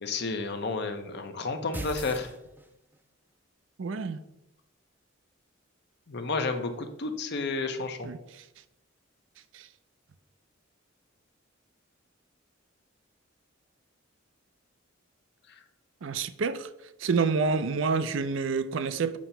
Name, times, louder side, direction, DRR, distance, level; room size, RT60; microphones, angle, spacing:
voice 1, 0.0-2.3 6.1-8.1, left 3 dB, 55° left, 0.7 m, -31 dB
sound 1, 1.7-3.0, right 1 dB, 10° right, 0.5 m, -39 dB
voice 2, 3.8-4.2 8.0-8.4 9.5-9.7 16.0-16.7 17.0-19.2, right 4 dB, 70° right, 0.5 m, -28 dB
7.3 x 2.9 x 5.5 m
head